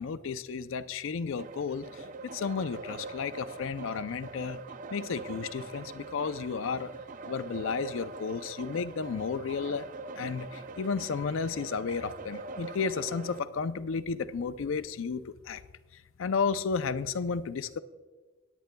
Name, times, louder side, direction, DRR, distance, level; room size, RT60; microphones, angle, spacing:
voice 1, 0.0-4.6 4.9-6.9 7.3-9.9 10.2-15.6 16.2-17.8, left 5 dB, 70° left, 13 dB, 0.4 m, -33 dB
sound 1, 1.4-13.4, right 3 dB, 40° right, 0.4 m, -43 dB
18.5 x 9.1 x 2.2 m, 1.3 s
head